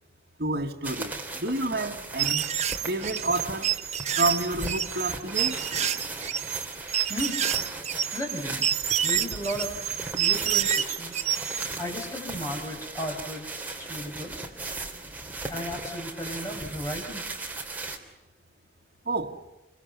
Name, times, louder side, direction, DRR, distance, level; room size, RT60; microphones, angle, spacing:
voice 1, 0.4-2.5 2.9-3.8 4.2-5.7 19.1-19.4, right 2 dB, 60° right, 1.9 m, -29 dB
sound 1, 0.8-18.0, right 3 dB, 10° right, 3.0 m, -37 dB
sound 2, 2.2-11.8, right 10 dB, 40° right, 1.0 m, -28 dB
voice 2, 7.1-7.4 8.1-8.6 9.0-9.8 10.2-11.2 11.5-13.5 13.8-14.3 15.5-17.2, equal, 15° left, 5.7 m, -35 dB
28.5 x 23.0 x 7.0 m
head